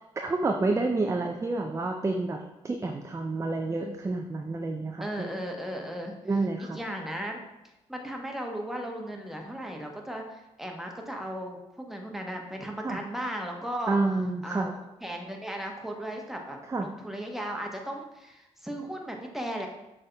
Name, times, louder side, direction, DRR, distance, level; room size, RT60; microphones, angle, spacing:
voice 1, 0.2-5.4 6.3-6.8 12.8-13.0 13.9-14.7 16.7-16.9, right 3 dB, 20° right, 3 dB, 0.4 m, -29 dB
voice 2, 5.0-6.2 6.6-7.4 7.9-14.0 14.4-19.7, right 1 dB, ahead, 1 dB, 1.0 m, -36 dB
6.4 x 3.7 x 2.3 m, 0.94 s
hypercardioid pair, 45°, 15 cm